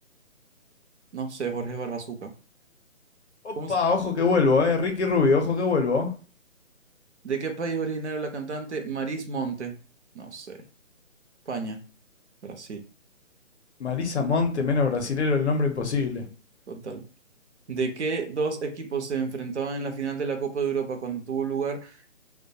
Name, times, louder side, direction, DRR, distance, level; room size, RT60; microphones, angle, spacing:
voice 1, 1.1-2.3 3.6-3.8 7.2-9.8 10.1-10.6 11.5-11.8 12.4-12.8 16.7-17.0 17.7-22.1, right 5 dB, 55° right, 0.6 m, -30 dB
voice 2, 3.4-6.1 13.8-16.2, left 4 dB, 55° left, 0.6 m, -23 dB
2.1 x 2.1 x 2.7 m
hypercardioid pair, 170°, 41 cm